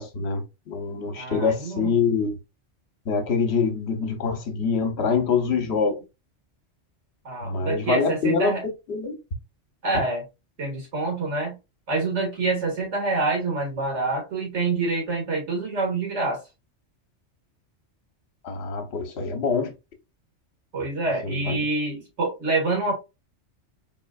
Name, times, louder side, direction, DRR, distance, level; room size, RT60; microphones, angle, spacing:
voice 1, 0.0-2.3 3.1-6.0 7.4-8.5 8.9-9.1 18.4-19.7 21.2-21.6, left 5 dB, 65° left, 1.2 m, -25 dB
voice 2, 1.1-1.9 7.2-8.6 9.8-10.2 10.6-11.6 11.9-16.4 20.7-22.9, right 3 dB, 75° right, 2.1 m, -26 dB
3.7 x 3.7 x 2.3 m
omnidirectional pair, 1.2 m